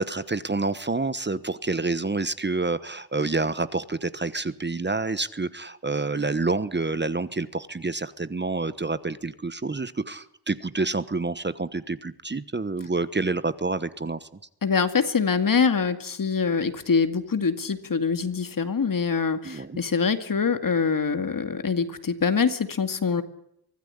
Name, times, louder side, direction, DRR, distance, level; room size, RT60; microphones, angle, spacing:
voice 1, 0.0-14.3 19.4-19.8, right 3 dB, 25° right, 14 dB, 1.1 m, -28 dB
voice 2, 14.6-23.2, left 5 dB, 55° left, 9 dB, 2.4 m, -24 dB
24.5 x 17.5 x 10.0 m, 0.75 s
wide cardioid pair, 135°, 40 cm